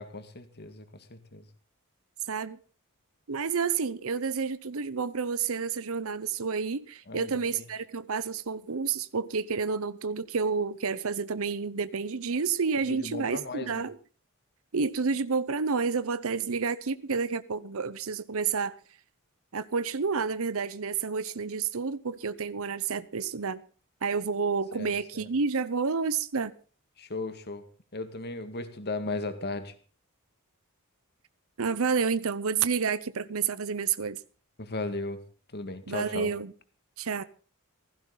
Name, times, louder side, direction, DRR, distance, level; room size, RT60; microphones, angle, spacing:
voice 1, 0.0-1.5 7.1-7.6 12.8-13.8 24.7-25.3 27.0-27.6 27.9-29.8 34.6-35.2 35.5-36.3, left 2 dB, 50° left, 2.0 m, -36 dB
voice 2, 2.3-2.6 3.3-13.9 14.7-18.7 19.5-23.6 24.0-26.5 31.6-34.2 35.9-36.5 37.0-37.2, right 5 dB, 70° right, 0.8 m, -30 dB
16.0 x 15.5 x 3.9 m
head